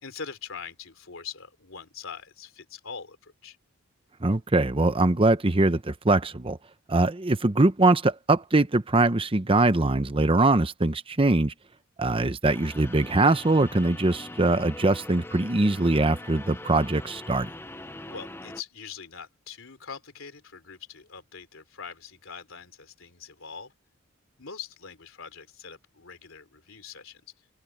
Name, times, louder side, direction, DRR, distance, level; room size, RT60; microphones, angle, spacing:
voice 1, 0.0-3.6 18.1-23.7 24.4-27.2, left 6 dB, 80° left, 3.2 m, -42 dB
voice 2, 4.2-6.6 6.9-11.5 12.0-17.5, right 2 dB, 25° right, 0.8 m, -22 dB
sound 1, 12.4-18.6, left 2 dB, 10° left, 0.8 m, -42 dB
open air
head